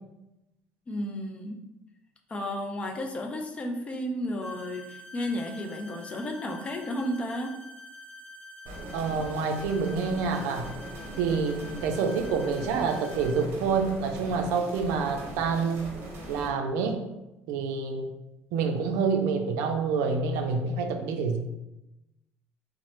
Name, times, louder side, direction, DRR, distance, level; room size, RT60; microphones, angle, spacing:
voice 1, 0.9-1.6 2.3-7.6, left 1 dB, 20° left, 3 dB, 0.3 m, -33 dB
sound 1, 4.4-13.4, left 1 dB, 40° left, 1.1 m, -47 dB
sound 2, 8.6-16.5, right 1 dB, 45° right, 0.8 m, -41 dB
voice 2, 8.9-10.7 11.2-15.9 16.3-17.0 17.5-18.1 18.5-21.5, right 5 dB, 80° right, 5 dB, 0.4 m, -27 dB
2.8 x 2.0 x 3.1 m, 0.94 s
cardioid pair, 135°, 5 cm